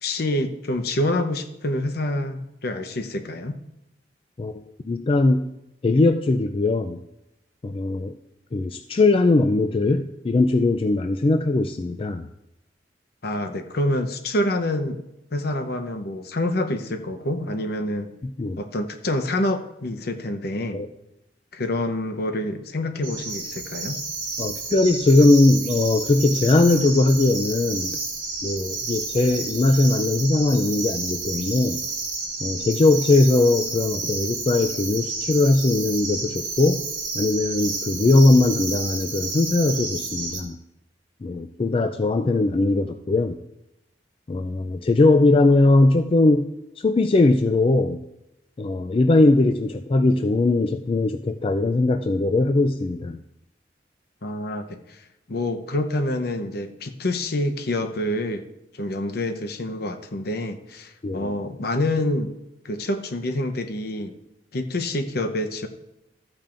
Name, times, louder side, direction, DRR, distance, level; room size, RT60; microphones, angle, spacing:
voice 1, 0.0-3.6 13.2-15.0 15.3-18.1 18.6-20.8 21.5-24.0 54.2-55.0 55.3-58.5 58.7-62.3 62.6-64.1 64.5-65.7, left 1 dB, 60° left, 8 dB, 0.8 m, -27 dB
voice 2, 4.8-5.5 5.8-7.0 7.6-8.1 8.5-12.3 18.2-18.6 20.7-20.9 24.4-28.0 28.4-31.8 32.4-36.8 37.1-40.6 41.2-43.4 44.3-46.5 46.8-48.0 48.6-53.2 61.0-61.3, left 2 dB, 30° left, 7 dB, 0.4 m, -20 dB
sound 1, 23.0-40.4, right 3 dB, 50° right, 2.5 m, -31 dB
14.0 x 8.8 x 2.6 m, 0.89 s
head